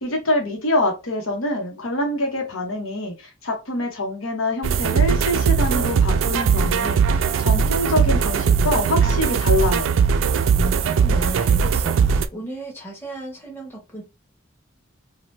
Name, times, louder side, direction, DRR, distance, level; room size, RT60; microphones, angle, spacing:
voice 1, 0.0-9.9, left 1 dB, 85° left, 1.0 m, -25 dB
sound 1, 4.6-12.3, right 6 dB, 70° right, 0.3 m, -19 dB
voice 2, 10.4-14.0, right 1 dB, 10° left, 1.0 m, -34 dB
2.8 x 2.2 x 3.2 m
head